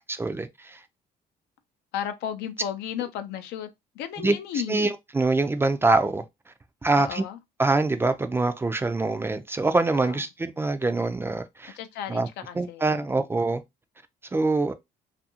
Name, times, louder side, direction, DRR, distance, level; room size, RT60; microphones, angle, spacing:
voice 1, 0.2-0.8 4.2-4.3 4.7-6.2 6.8-7.2 7.6-11.7 12.1-12.3 12.6-13.6 14.3-14.7, right 3 dB, 15° right, 0.3 m, -24 dB
voice 2, 1.9-3.7 3.9-4.8 7.0-7.4 9.9-10.2 11.7-13.2, left 9 dB, 85° left, 0.5 m, -34 dB
2.6 x 2.5 x 2.7 m
cardioid pair, 110°, 17 cm